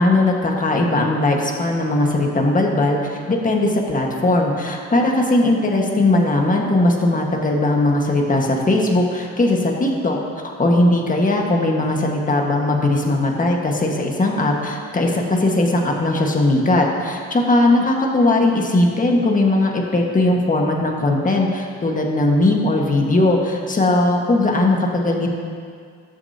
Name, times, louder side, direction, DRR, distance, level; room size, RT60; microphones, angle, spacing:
voice 1, 0.0-10.2 10.4-25.3, left 2 dB, 25° left, 0 dB, 1.7 m, -19 dB
20.0 x 7.0 x 2.9 m, 2.2 s
cardioid pair, 90°, 30 cm